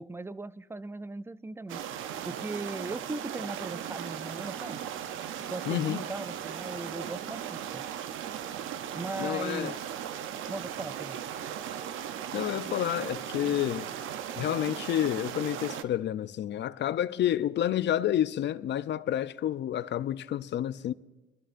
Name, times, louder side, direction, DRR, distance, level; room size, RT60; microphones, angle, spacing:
voice 1, 0.0-1.8 2.2-4.8 5.5-7.8 8.9-9.8 10.5-11.2, right 2 dB, 10° right, 0.4 m, -38 dB
sound 1, 1.7-15.8, right 9 dB, 85° right, 0.7 m, -37 dB
voice 2, 5.7-6.0 9.2-9.8 12.3-13.9 14.4-20.9, left 11 dB, 65° left, 0.6 m, -29 dB
23.0 x 13.0 x 2.6 m
cardioid pair, 90°, 20 cm